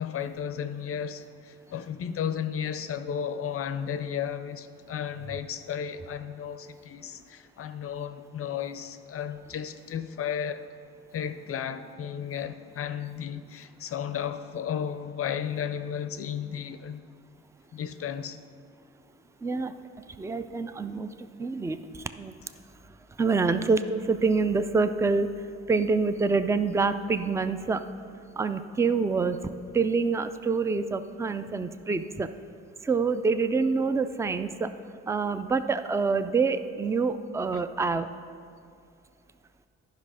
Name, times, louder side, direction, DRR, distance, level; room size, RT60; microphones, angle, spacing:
voice 1, 0.0-10.7 11.1-17.0 17.7-18.4 37.5-37.6, left 8 dB, 50° left, 0.5 m, -34 dB
voice 2, 19.4-19.7 20.2-22.3 23.2-27.8 28.4-29.4 29.7-32.3 32.8-34.7 35.1-38.1, right 4 dB, 10° right, 0.3 m, -26 dB
10.5 x 5.5 x 4.9 m
cardioid pair, 90°, 30 cm